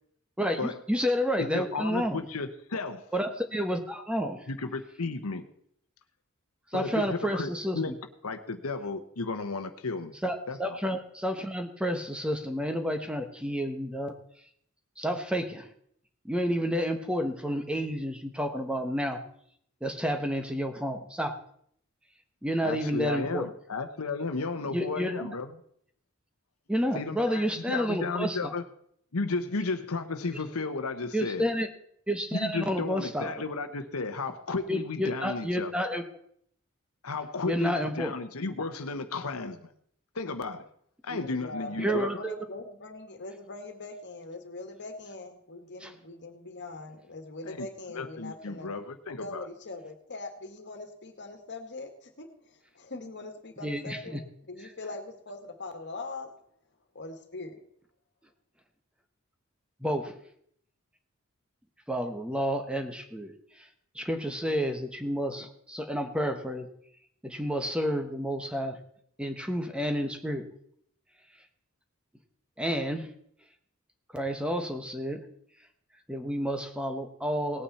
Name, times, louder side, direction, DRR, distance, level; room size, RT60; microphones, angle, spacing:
voice 1, 0.4-2.2 3.1-4.5 6.7-7.9 10.2-14.1 15.0-15.7 16.2-19.2 19.8-21.3 22.4-23.5 24.7-25.3 26.7-28.5 31.1-31.7 32.1-33.3 34.7-36.0 37.4-38.1 41.1-41.2 41.8-42.3 45.8-45.9 53.6-54.2 59.8-60.1 61.9-63.3 63.9-66.7 67.2-68.8 69.2-70.5 72.6-73.1 74.1-75.3 76.1-77.6, equal, 5° right, 6 dB, 1.1 m, -30 dB
voice 2, 1.4-3.1 4.5-5.5 6.7-7.9 8.2-10.2 10.5-10.8 22.6-25.5 26.9-28.6 29.1-31.5 32.3-35.7 37.0-39.7 40.1-40.7 41.0-42.2 47.4-47.7 47.9-49.5, left 3 dB, 80° left, 8 dB, 1.0 m, -33 dB
voice 3, 41.3-48.7 49.1-56.3 56.9-57.6, left 2 dB, 55° left, 6 dB, 1.8 m, -42 dB
18.5 x 8.9 x 4.2 m, 0.67 s
head